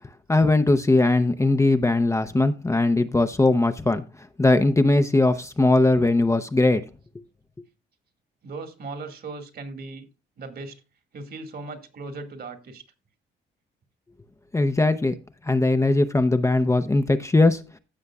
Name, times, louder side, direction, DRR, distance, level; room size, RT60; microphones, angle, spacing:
voice 1, 0.3-4.0 4.4-6.8 14.5-15.1 15.5-17.6, left 2 dB, 15° left, 0.6 m, -20 dB
voice 2, 8.4-10.1 10.4-10.8 11.1-12.8, right 3 dB, 50° right, 1.9 m, -37 dB
15.0 x 6.6 x 2.3 m
cardioid pair, 90°, 20 cm